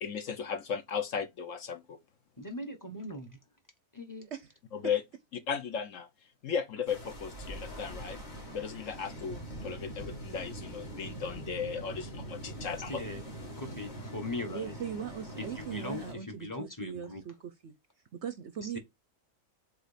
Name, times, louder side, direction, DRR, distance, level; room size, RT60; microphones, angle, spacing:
voice 1, 0.0-2.0 4.7-5.0 5.5-6.1 6.4-8.2 8.5-13.0, left 7 dB, 60° left, 1.1 m, -36 dB
voice 2, 2.4-3.4 3.9-4.3 12.9-13.2 13.6-14.7 15.4-17.2 18.6-18.8, left 2 dB, 15° left, 1.1 m, -40 dB
sound 1, 6.9-16.1, right 1 dB, 30° left, 1.8 m, -43 dB
voice 3, 14.5-17.7 18.2-18.8, right 8 dB, 60° right, 0.8 m, -40 dB
4.7 x 4.1 x 5.0 m
omnidirectional pair, 1.6 m